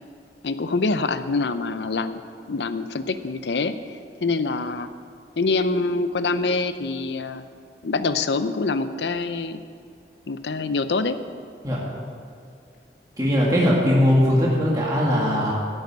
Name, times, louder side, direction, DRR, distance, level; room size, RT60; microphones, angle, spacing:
voice 1, 0.4-2.2 2.5-4.9 5.4-7.4 7.8-9.6 10.3-11.2, left 3 dB, 75° left, 11 dB, 0.6 m, -25 dB
voice 2, 13.2-15.5, equal, 20° right, -5 dB, 2.0 m, -19 dB
13.0 x 6.7 x 9.6 m, 2.2 s
head